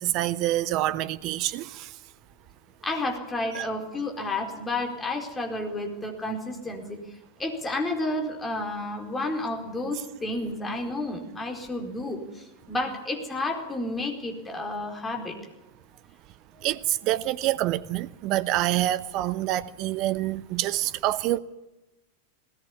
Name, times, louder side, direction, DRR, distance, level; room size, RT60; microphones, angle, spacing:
voice 1, 0.0-1.9 3.5-3.7 16.6-21.4, right 15 dB, 40° right, 0.9 m, -26 dB
voice 2, 2.8-7.0 7.4-12.2 12.7-15.4 16.6-16.7, left 2 dB, 15° left, 4.5 m, -31 dB
19.5 x 18.5 x 8.6 m
figure-of-eight pair, 90°, 0 cm